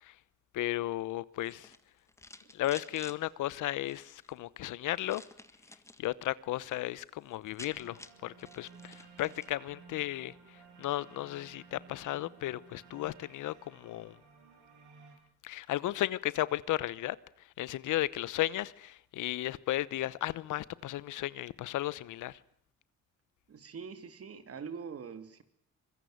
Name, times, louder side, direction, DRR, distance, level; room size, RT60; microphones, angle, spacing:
voice 1, 0.5-1.7 2.5-5.2 6.0-14.2 15.4-22.4, left 15 dB, 80° left, 1.0 m, -35 dB
sound 1, 1.4-3.2 3.8-4.3 5.1-6.1 6.4-6.8 7.1-7.2 7.3-9.6, left 1 dB, 10° left, 1.7 m, -52 dB
sound 2, 7.7-15.2, right 5 dB, 75° right, 7.1 m, -56 dB
voice 2, 23.5-25.4, right 6 dB, 50° right, 3.0 m, -43 dB
24.5 x 21.5 x 9.4 m
cardioid pair, 90°, 30 cm